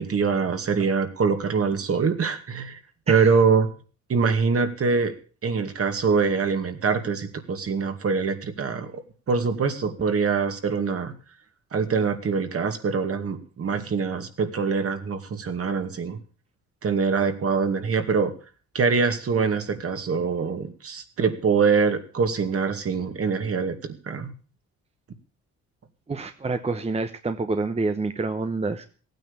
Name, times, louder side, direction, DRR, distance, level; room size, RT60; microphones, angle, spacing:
voice 1, 0.0-2.8 3.1-3.7 4.1-5.1 5.4-9.0 9.3-11.1 11.7-16.2 16.8-18.3 18.7-24.3, right 5 dB, 50° right, 7 dB, 2.3 m, -24 dB
voice 2, 26.1-28.9, right 3 dB, 20° right, 8 dB, 1.0 m, -27 dB
15.5 x 9.3 x 7.0 m, 0.40 s
cardioid pair, 90°, 30 cm